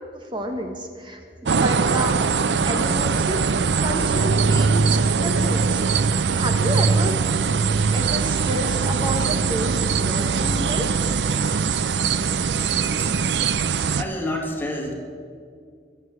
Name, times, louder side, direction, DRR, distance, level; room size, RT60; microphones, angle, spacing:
voice 1, 0.1-2.1 2.6-3.5 3.8-5.8 6.3-7.2 7.9-10.9, equal, 30° right, 4 dB, 1.3 m, -30 dB
sound 1, 1.5-14.0, right 5 dB, 75° right, 0.5 m, -21 dB
voice 2, 14.0-14.9, left 1 dB, 10° left, 0 dB, 2.3 m, -28 dB
22.0 x 7.9 x 7.9 m, 2.1 s
head